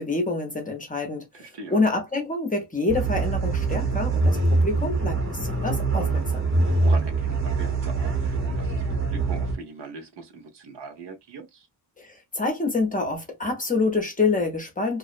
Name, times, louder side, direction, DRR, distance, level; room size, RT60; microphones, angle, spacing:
voice 1, 0.0-6.5 12.0-15.0, left 3 dB, 20° left, 0.6 m, -27 dB
voice 2, 1.3-1.8 6.8-11.7, right 4 dB, 80° right, 0.9 m, -41 dB
sound 1, 2.9-9.6, right 3 dB, 30° right, 0.8 m, -24 dB
2.5 x 2.0 x 2.4 m
wide cardioid pair, 155°, 41 cm